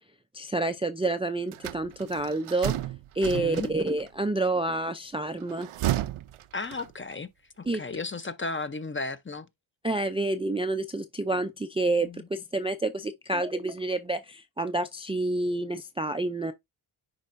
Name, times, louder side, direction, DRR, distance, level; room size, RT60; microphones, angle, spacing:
voice 1, 0.3-2.7 3.1-5.7 7.7-7.8 9.8-16.5, right 2 dB, 10° right, 0.4 m, -28 dB
sound 1, 1.5-4.1 5.4-7.2, right 13 dB, 80° right, 0.6 m, -33 dB
voice 2, 3.3-3.7 6.5-7.3 7.6-9.5 12.0-12.3, left 3 dB, 25° left, 0.7 m, -34 dB
10.0 x 4.2 x 2.6 m
wide cardioid pair, 90°, 50 cm